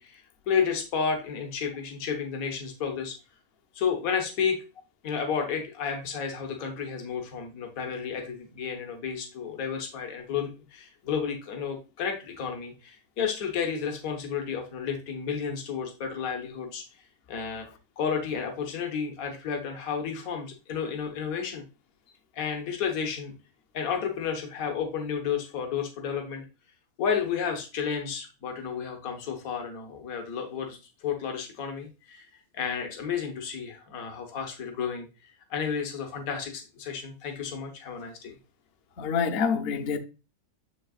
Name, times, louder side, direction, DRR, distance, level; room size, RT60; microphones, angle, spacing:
voice 1, 0.0-3.2 3.7-4.6 5.0-16.8 17.3-17.7 18.0-21.6 22.3-23.3 23.7-26.5 27.0-32.3 32.5-38.4, left 6 dB, 70° left, 1.5 m, -32 dB
voice 2, 39.0-40.0, left 6 dB, 50° left, 0.8 m, -27 dB
7.1 x 6.4 x 2.4 m
omnidirectional pair, 1.6 m